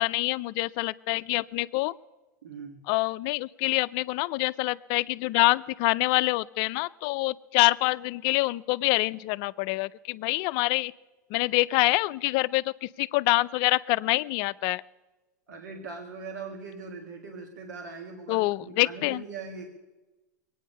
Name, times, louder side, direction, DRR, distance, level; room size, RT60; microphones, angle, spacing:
voice 1, 0.0-1.9 2.9-10.9 11.3-12.6 13.0-14.8 18.3-19.2, left 21 dB, 50° left, 16 dB, 0.5 m, -26 dB
voice 2, 2.4-2.9 15.5-19.6, right 4 dB, 80° right, 2 dB, 1.8 m, -41 dB
22.5 x 9.3 x 5.5 m, 1.1 s
hypercardioid pair, 105°, 10 cm